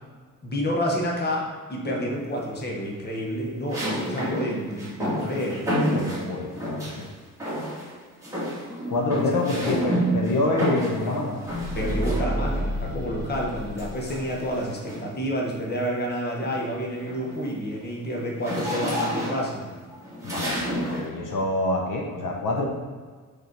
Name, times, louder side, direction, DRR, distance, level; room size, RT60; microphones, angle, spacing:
voice 1, 0.4-5.6 11.7-19.7, equal, 30° left, -2 dB, 1.2 m, -29 dB
sound 1, 1.8-2.4 3.7-7.0 7.4-7.9 8.2-12.6 13.8-15.2 15.7-15.9 16.3-21.1, equal, 10° right, 1.7 m, -30 dB
voice 2, 5.9-7.1 8.9-11.4 20.2-22.6, left 2 dB, 75° left, 0 dB, 1.0 m, -26 dB
sound 2, 11.4-14.7, equal, 30° right, 1.0 m, -31 dB
5.2 x 4.3 x 4.6 m, 1.5 s
wide cardioid pair, 160°, 32 cm